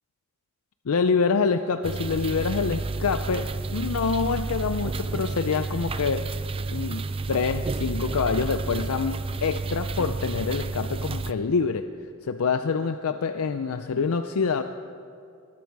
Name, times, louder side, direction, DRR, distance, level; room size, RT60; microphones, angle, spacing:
voice 1, 0.9-6.2 6.7-11.9 12.2-14.6, left 5 dB, 75° left, 9 dB, 0.5 m, -26 dB
sound 1, 1.8-11.3, right 3 dB, 25° right, 0.4 m, -31 dB
20.0 x 13.5 x 4.7 m, 2.4 s
head